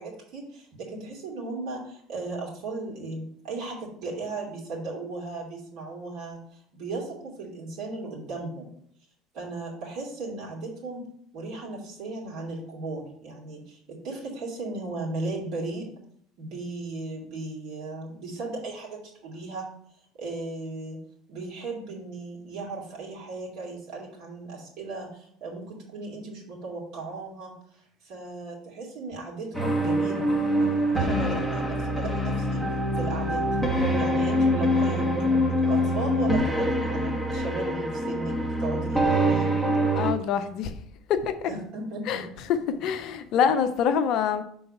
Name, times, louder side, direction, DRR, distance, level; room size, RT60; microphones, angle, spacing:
voice 1, 0.0-6.4 6.7-8.7 9.3-11.0 11.3-15.9 16.4-19.7 20.2-21.0 21.3-30.3 30.6-32.6 33.0-33.6 33.9-38.3 38.6-39.6 41.5-42.2, right 3 dB, 60° right, 2.4 m, -36 dB
sound 1, 29.5-40.1, equal, 5° right, 1.0 m, -25 dB
voice 2, 39.9-40.8 41.1-41.5 42.1-42.2 42.5-44.4, left 7 dB, 55° left, 0.6 m, -25 dB
5.8 x 3.9 x 5.3 m
hypercardioid pair, 65°, 0 cm